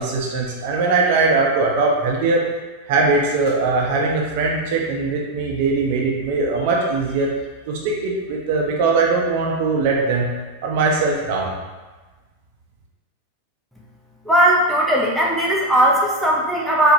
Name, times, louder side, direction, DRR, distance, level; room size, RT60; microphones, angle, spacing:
voice 1, 0.0-2.5 2.9-7.3 7.7-10.3 10.6-11.5, right 3 dB, 50° right, -1 dB, 0.6 m, -20 dB
voice 2, 14.3-16.9, right 1 dB, ahead, -5 dB, 0.6 m, -17 dB
4.6 x 2.1 x 2.7 m, 1.3 s
figure-of-eight pair, 90°, 0 cm